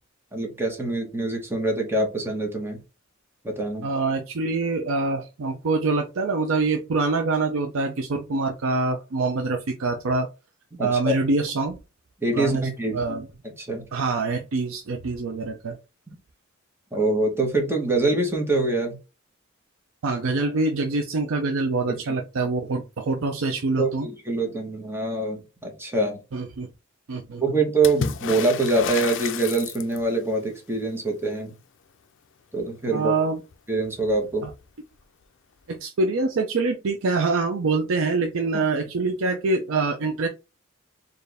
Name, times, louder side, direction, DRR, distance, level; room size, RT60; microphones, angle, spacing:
voice 1, 0.3-2.8 3.4-3.9 10.8-11.2 12.2-13.0 13.4-13.9 16.9-19.0 21.9-22.1 23.8-26.2 27.4-31.5 32.5-33.1 33.7-34.5 38.5-38.6, right 2 dB, 10° right, 2 dB, 1.2 m, -25 dB
voice 2, 3.8-10.3 10.8-11.8 12.3-12.6 12.9-13.3 13.9-15.8 20.0-24.1 26.3-26.7 27.1-27.4 32.9-33.4 34.4-34.5 35.7-40.3, right 3 dB, 70° right, 5 dB, 0.5 m, -25 dB
Water / Splash splatter, 27.8-30.2 33.5-33.6 33.9-34.6 35.7-35.8, left 7 dB, 60° left, 0.4 m, -31 dB
4.4 x 2.6 x 3.3 m, 0.28 s
head